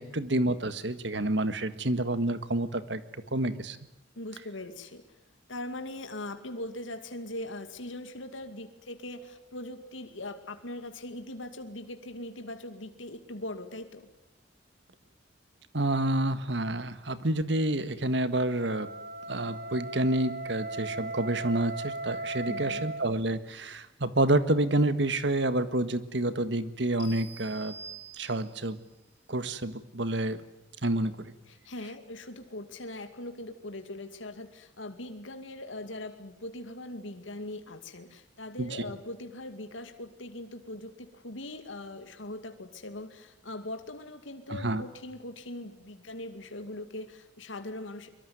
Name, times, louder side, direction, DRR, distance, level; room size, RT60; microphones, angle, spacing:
voice 1, 0.0-3.0 3.3-3.8 15.7-18.9 19.3-27.7 28.2-28.8 29.3-30.4 30.8-31.3 38.6-38.8 44.5-44.8, right 1 dB, 65° right, 12 dB, 1.7 m, -28 dB
voice 2, 4.2-5.0 5.5-14.1 22.4-22.8 31.5-48.1, left 1 dB, 85° left, 7 dB, 2.4 m, -41 dB
Wind instrument woodwind instrument, 18.4-23.1, right 2 dB, 45° right, 1.7 m, -37 dB
sound 1, 27.0-28.7, right 4 dB, 55° left, 7.0 m, -46 dB
24.0 x 23.0 x 9.5 m, 0.87 s
head